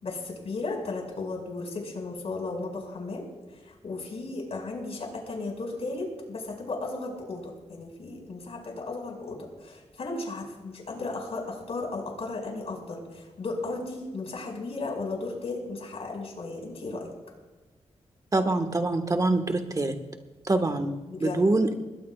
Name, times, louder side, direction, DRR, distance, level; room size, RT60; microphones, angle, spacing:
voice 1, 0.0-3.3 3.5-17.1 21.1-21.4, left 3 dB, 65° left, 0 dB, 5.6 m, -35 dB
voice 2, 18.3-19.9 20.5-21.7, right 2 dB, 30° right, 6 dB, 1.6 m, -25 dB
21.0 x 18.0 x 2.5 m, 1.3 s
cardioid pair, 85°, 11 cm